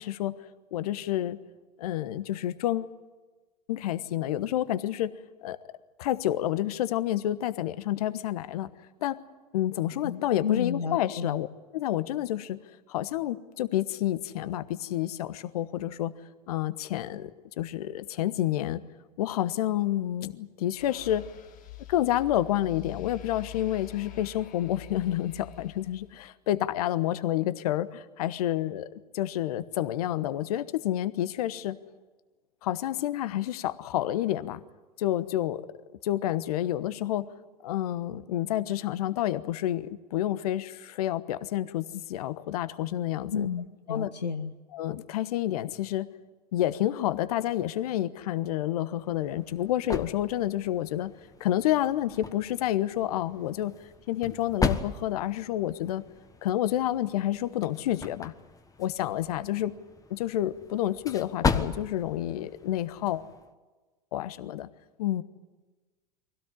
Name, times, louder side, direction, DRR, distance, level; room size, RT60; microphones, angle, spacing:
voice 1, 0.0-1.4 1.8-3.0 3.7-5.1 5.4-5.6 6.0-8.7 9.0-9.2 9.5-11.5 11.7-12.6 12.9-16.1 16.5-17.3 17.6-18.8 19.2-21.2 21.9-28.9 29.1-31.8 32.6-34.6 35.0-35.6 36.0-37.3 37.6-43.5 43.9-44.1 44.7-46.1 46.5-51.1 51.4-56.0 56.4-58.3 58.8-59.7 60.1-63.2 64.1-64.7 65.0-65.2, left 13 dB, 65° left, 14 dB, 1.2 m, -29 dB
voice 2, 10.0-11.4 43.3-44.5, left 6 dB, 90° left, 8 dB, 0.8 m, -32 dB
sound 1, 20.8-26.3, left 14 dB, 40° left, 2.0 m, -46 dB
sound 2, 49.0-63.5, left 5 dB, 15° left, 1.5 m, -36 dB
24.0 x 17.0 x 9.9 m, 1.2 s
hypercardioid pair, 80°, 20 cm